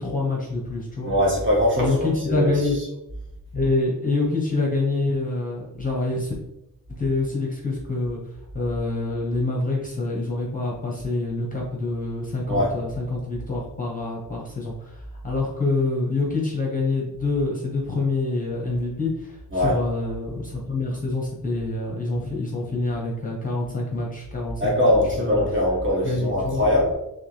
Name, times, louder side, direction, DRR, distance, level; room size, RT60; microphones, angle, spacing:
voice 1, 0.0-1.1 1.8-2.8 3.5-6.3 7.0-8.2 8.5-25.4 25.9-26.6, left 3 dB, 25° left, -3 dB, 0.8 m, -26 dB
voice 2, 1.0-2.5 12.5-12.7 19.5-19.7 24.6-26.9, left 1 dB, 35° right, -4 dB, 1.6 m, -21 dB
6.6 x 2.3 x 3.2 m, 0.90 s
wide cardioid pair, 175°, 35 cm